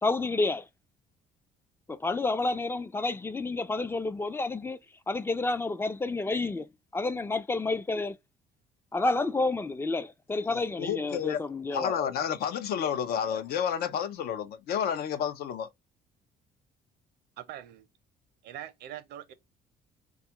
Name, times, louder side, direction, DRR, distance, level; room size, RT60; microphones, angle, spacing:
voice 1, 0.0-0.7 1.9-4.8 5.1-6.7 6.9-8.2 8.9-12.0, left 3 dB, 15° left, 0.3 m, -29 dB
voice 2, 10.5-11.4 11.7-15.7, left 8 dB, 65° left, 0.5 m, -30 dB
voice 3, 17.4-17.9 18.4-19.3, right 11 dB, 75° right, 0.6 m, -42 dB
3.5 x 2.3 x 2.8 m
cardioid pair, 110°, 17 cm